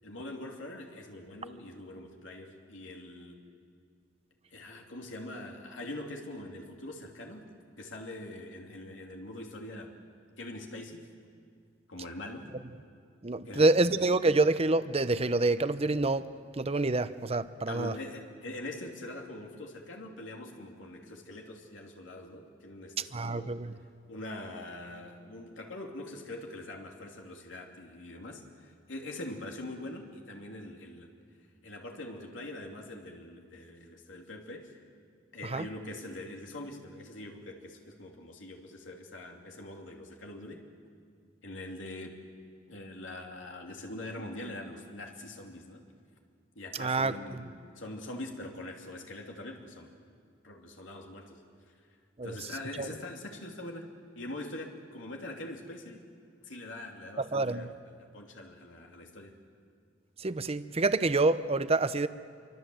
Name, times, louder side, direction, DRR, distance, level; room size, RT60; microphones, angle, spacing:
voice 1, 0.0-3.4 4.5-7.5 7.8-9.9 10.4-11.0 11.9-12.5 13.4-13.7 17.7-23.6 24.1-31.1 31.6-34.8 35.3-40.6 41.4-42.2 42.7-45.8 46.5-49.9 50.4-51.4 52.2-56.0 56.4-59.3, left 1 dB, 90° left, 1 dB, 2.8 m, -43 dB
voice 2, 13.2-16.3 16.6-17.9 23.1-23.7 35.4-35.7 46.8-47.5 52.2-52.4 52.8-52.9 57.2-57.7 60.2-62.1, right 2 dB, 35° right, 13 dB, 0.8 m, -27 dB
27.0 x 24.0 x 7.8 m, 2.2 s
head